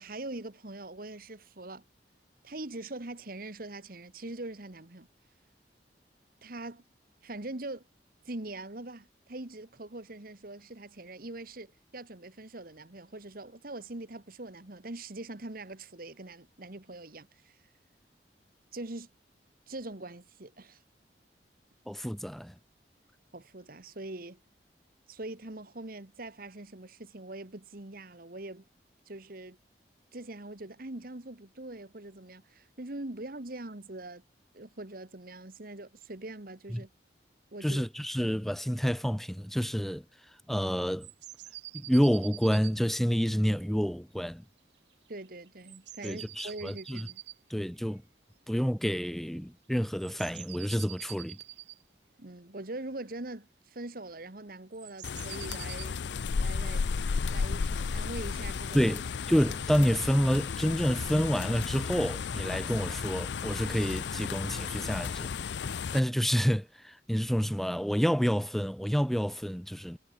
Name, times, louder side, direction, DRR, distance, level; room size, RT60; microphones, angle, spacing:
voice 1, 0.0-1.8 2.4-5.1 6.4-6.8 7.2-7.8 8.2-17.6 18.7-19.1 19.7-20.8 23.3-24.4 25.1-28.6 29.1-29.6 30.1-34.2 34.5-36.9 37.5-37.8 45.1-47.2 52.2-56.0 56.4-56.9 57.3-59.0, right 2 dB, 55° right, 1.7 m, -42 dB
voice 2, 21.9-22.5 36.7-36.8 37.6-40.0 40.5-41.1 41.7-44.4 46.0-47.1 47.5-48.0 48.5-51.4 58.7-65.3 65.9-70.0, equal, ahead, 1.1 m, -28 dB
sound 1, 41.0-42.8 45.2-47.4 48.0-48.1 49.9-51.8 54.7-55.9, right 16 dB, 80° right, 1.2 m, -46 dB
sound 2, 55.0-66.0, left 5 dB, 80° left, 0.5 m, -33 dB
head